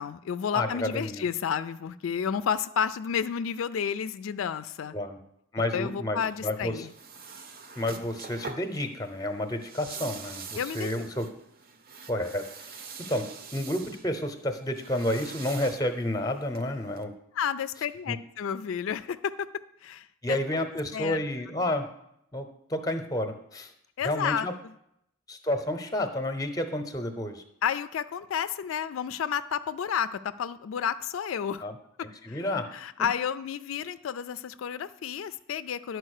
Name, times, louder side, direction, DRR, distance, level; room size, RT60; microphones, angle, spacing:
voice 1, 0.0-4.9 5.7-6.9 10.6-11.0 17.3-19.5 19.8-20.4 20.9-21.2 24.0-24.7 27.6-31.6 32.0-32.4 32.7-36.0, left 8 dB, 80° left, 13 dB, 0.4 m, -31 dB
voice 2, 0.5-1.2 4.9-5.2 5.5-6.9 7.8-11.3 12.1-12.7 13.1-17.1 18.1-18.2 20.2-21.9 22.3-23.7 24.0-24.5 25.3-27.4 31.6-31.7 32.0-32.7, left 1 dB, 20° left, 8 dB, 0.7 m, -30 dB
sound 1, 6.3-17.0, right 5 dB, 45° right, 0.7 m, -45 dB
11.0 x 4.7 x 6.5 m, 0.77 s
head